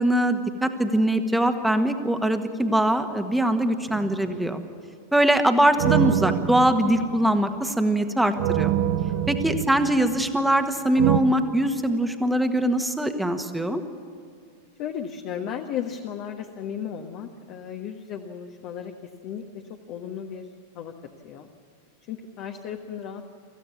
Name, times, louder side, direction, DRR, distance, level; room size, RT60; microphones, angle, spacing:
voice 1, 0.0-4.6 5.1-8.7 9.3-13.8, right 1 dB, 5° right, 7 dB, 1.6 m, -22 dB
sound 1, 3.9-4.5 5.8-7.6 8.4-10.6 11.0-11.2, right 12 dB, 55° right, 0.9 m, -26 dB
voice 2, 9.1-9.4 14.8-18.9 19.2-19.4 19.9-20.5 20.7-20.9 21.2-21.5 22.1-23.3, left 8 dB, 40° left, 3 dB, 1.3 m, -35 dB
25.0 x 15.0 x 7.2 m, 2.4 s
figure-of-eight pair, 90°, 0 cm